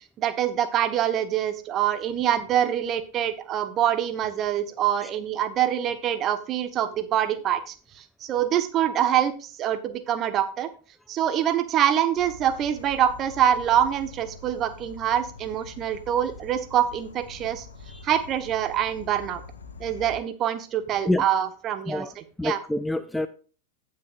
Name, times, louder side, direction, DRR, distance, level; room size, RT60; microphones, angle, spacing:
voice 1, 0.2-10.7 11.1-17.7 18.0-19.4 19.8-22.0 22.4-22.6, right 10 dB, 30° right, 11 dB, 1.2 m, -25 dB
Insect / Frog, 12.1-20.2, left 4 dB, 70° left, 1.4 m, -45 dB
voice 2, 21.9-23.3, left 1 dB, 5° left, 12 dB, 0.5 m, -28 dB
16.5 x 6.0 x 2.4 m, 0.37 s
figure-of-eight pair, 90°, 0 cm